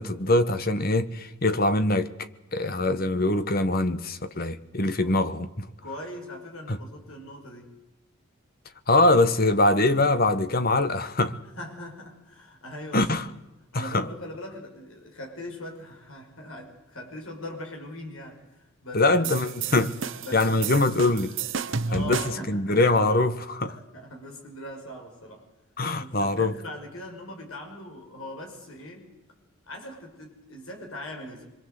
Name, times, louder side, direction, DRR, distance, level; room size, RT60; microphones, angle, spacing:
voice 1, 0.0-2.1 2.5-5.7 6.7-6.8 8.9-11.4 12.9-13.3 13.7-14.0 18.9-20.0 20.3-21.3 21.9-22.2 22.5-23.8 25.8-26.5, left 2 dB, 45° left, 1.3 m, -23 dB
voice 2, 5.8-7.7 11.6-13.1 13.7-19.5 20.2-21.0 21.9-22.8 23.7-25.5 26.0-29.1 29.7-31.4, left 1 dB, 85° left, 5.5 m, -41 dB
sound 1, 19.2-22.5, right 6 dB, 65° right, 1.0 m, -32 dB
25.5 x 23.0 x 8.0 m
head